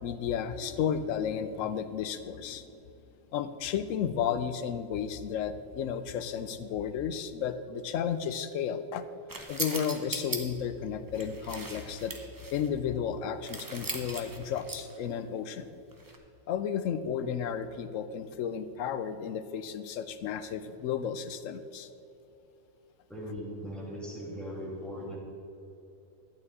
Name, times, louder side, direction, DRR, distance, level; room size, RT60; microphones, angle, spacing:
voice 1, 0.0-2.6 3.3-9.1 9.5-12.1 12.5-15.7 16.5-21.9, left 8 dB, 80° left, 12 dB, 1.0 m, -33 dB
sound 1, 9.3-10.4 11.1-12.7 13.5-15.0 15.9-16.2, right 2 dB, 20° right, 0.7 m, -38 dB
voice 2, 23.1-25.2, equal, ahead, -4 dB, 2.3 m, -39 dB
12.0 x 8.8 x 4.1 m, 2.8 s
omnidirectional pair, 1.4 m